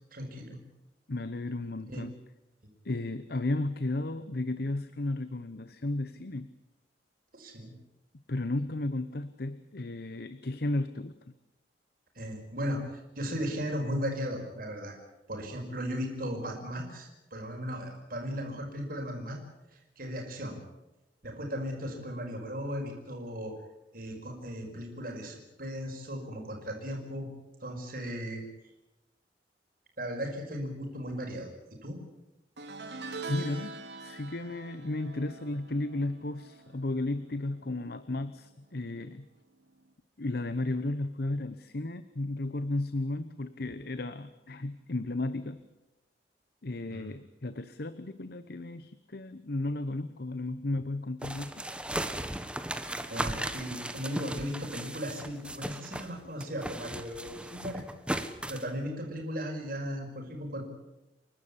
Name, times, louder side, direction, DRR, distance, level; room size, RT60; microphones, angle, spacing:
voice 1, 0.1-0.6 1.9-2.0 7.3-7.8 12.2-15.0 15.3-19.4 19.7-20.6 21.2-23.6 23.9-27.3 27.6-28.4 30.0-31.5 31.8-32.0 46.9-47.1 53.1-57.8 58.5-60.6, equal, 55° right, 1 dB, 5.3 m, -36 dB
voice 2, 1.1-2.1 2.8-6.5 8.3-11.2 33.3-39.3 40.2-45.6 46.6-51.6, left 2 dB, 60° left, 12 dB, 0.9 m, -34 dB
sound 1, 32.6-38.0 38.2-38.6 39.8-39.9, right 3 dB, 70° right, 3.3 m, -44 dB
sound 2, 51.2-56.1 56.4-58.7, right 1 dB, 5° right, 1.2 m, -36 dB
29.5 x 12.5 x 9.9 m, 1.0 s
head